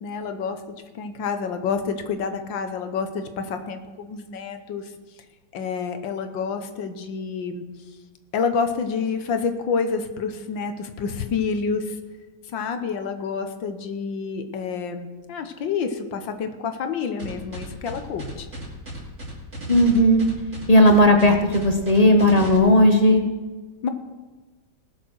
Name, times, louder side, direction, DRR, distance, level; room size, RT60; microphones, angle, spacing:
voice 1, 0.0-0.6 0.9-4.9 5.5-7.6 8.3-12.0 12.5-18.5 23.8-23.9, left 5 dB, 75° left, 8 dB, 1.7 m, -28 dB
sound 1, 17.2-22.6, equal, 50° right, 3.4 m, -35 dB
voice 2, 19.7-20.2 20.7-23.2, left 1 dB, 25° left, 4 dB, 0.9 m, -15 dB
19.0 x 6.6 x 6.3 m, 1.3 s
omnidirectional pair, 2.1 m